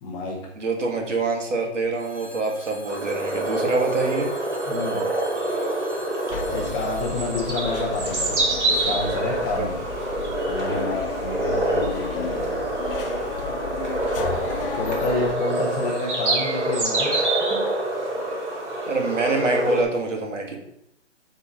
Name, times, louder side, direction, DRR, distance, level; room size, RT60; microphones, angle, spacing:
voice 1, 0.0-0.4 4.7-5.1 6.5-8.4 8.7-9.8 10.5-12.6 14.8-17.1 17.5-17.6, left 3 dB, 10° left, -2 dB, 0.6 m, -29 dB
voice 2, 0.6-4.3 9.6-9.7 15.0-15.2 18.9-20.6, right 3 dB, 85° right, 2 dB, 2.0 m, -25 dB
Telephone, 1.9-8.8, left 1 dB, 10° right, 2.4 m, -46 dB
sound 1, 2.9-19.8, right 2 dB, 70° right, 2.2 m, -26 dB
sound 2, 6.3-15.3, left 7 dB, 50° left, 0.7 m, -34 dB
6.9 x 3.8 x 5.0 m, 0.76 s
hypercardioid pair, 150°, 36 cm